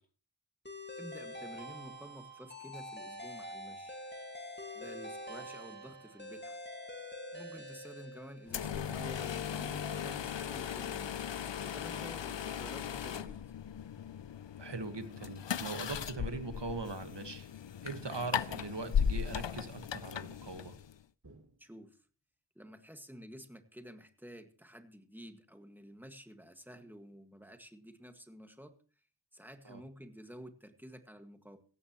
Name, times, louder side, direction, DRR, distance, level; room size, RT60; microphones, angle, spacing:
sound 1, 0.7-8.8, left 1 dB, 25° left, 2.0 m, -46 dB
voice 1, 1.0-4.0 4.7-6.6 7.3-11.2 11.6-13.5 21.6-22.0 22.6-28.7 29.3-31.6, equal, 5° right, 6 dB, 1.8 m, -51 dB
sound 2, 8.5-21.0, left 8 dB, 90° left, 0.6 m, -37 dB
voice 2, 14.6-17.5 17.8-20.8 29.6-29.8, right 3 dB, 75° right, 8 dB, 1.6 m, -41 dB
sound 3, 21.2-22.1, right 2 dB, 45° right, 2.8 m, -61 dB
16.5 x 14.0 x 3.0 m, 0.40 s
wide cardioid pair, 45°, 42 cm